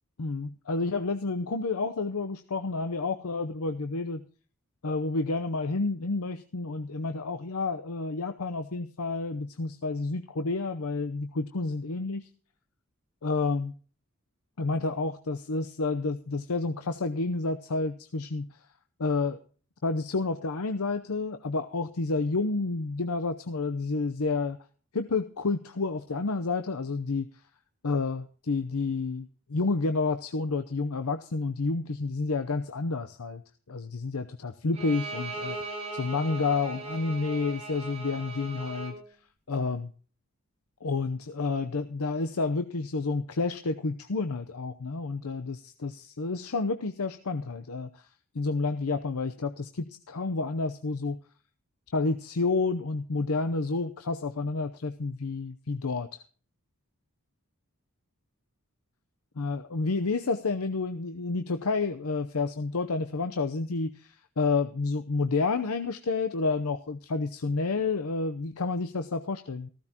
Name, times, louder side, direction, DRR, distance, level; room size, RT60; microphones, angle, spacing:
voice 1, 0.2-4.2 4.8-12.3 13.2-13.8 14.6-18.5 19.0-19.4 19.8-24.6 24.9-27.3 27.8-33.4 33.7-38.9 39.5-39.9 40.8-48.0 48.3-51.2 51.9-56.2 59.4-69.7, left 3 dB, 85° left, 8 dB, 0.8 m, -30 dB
Bowed string instrument, 34.8-39.0, right 3 dB, 30° right, 4.0 m, -38 dB
15.0 x 14.5 x 2.9 m, 0.41 s
head